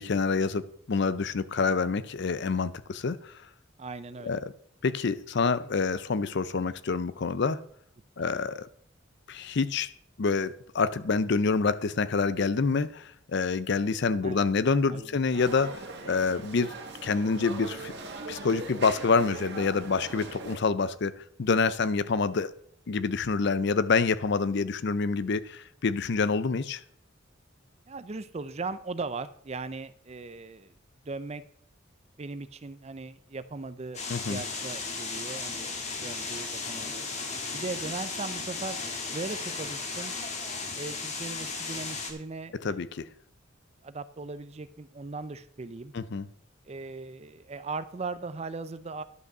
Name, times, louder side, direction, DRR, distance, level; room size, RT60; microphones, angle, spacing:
voice 1, 0.0-3.3 4.2-4.5 4.8-7.6 8.2-8.7 9.3-9.9 10.2-16.7 17.0-17.9 18.3-22.5 22.9-26.8 34.1-34.4 42.6-43.1 45.9-46.3, left 4 dB, 60° left, 0.5 m, -27 dB
voice 2, 3.8-4.3 8.2-8.3 14.2-14.5 14.9-15.1 27.9-30.7 31.0-31.4 32.2-35.7 36.0-37.1 37.5-38.8 39.1-40.1 40.8-42.8 43.8-45.9 46.7-49.0, right 3 dB, 30° right, 0.5 m, -38 dB
sound 1, 15.3-20.6, right 3 dB, 55° right, 1.8 m, -40 dB
sound 2, 33.9-42.1, left 4 dB, 35° left, 1.5 m, -35 dB
11.0 x 5.3 x 6.6 m
head